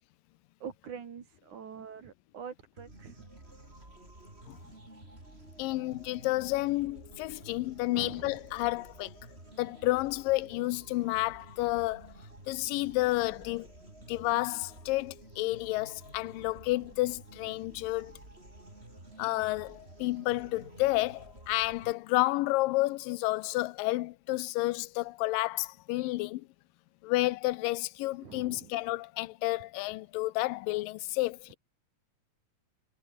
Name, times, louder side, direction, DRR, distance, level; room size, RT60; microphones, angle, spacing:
voice 1, 0.6-3.3 7.9-8.4 28.2-28.7, right 7 dB, 60° right, 4.1 m, -45 dB
sound 1, 2.8-21.9, right 2 dB, 15° right, 5.2 m, -51 dB
voice 2, 5.6-9.1 9.6-12.1 12.5-13.7 14.1-18.1 19.2-26.5 27.0-31.6, left 19 dB, 85° left, 2.3 m, -30 dB
omnidirectional pair, 4.1 m